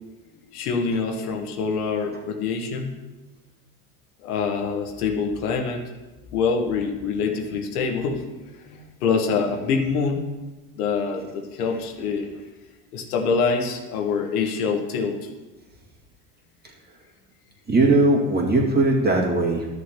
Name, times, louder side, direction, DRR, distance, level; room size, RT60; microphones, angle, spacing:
voice 1, 0.5-2.9 4.2-5.8 6.3-8.3 8.6-10.3 10.8-12.3 12.9-15.3, left 5 dB, 90° left, 2 dB, 1.5 m, -25 dB
voice 2, 17.7-19.7, right 2 dB, 20° right, -2 dB, 2.1 m, -19 dB
13.5 x 6.5 x 2.9 m, 1.2 s
supercardioid pair, 110°, 44 cm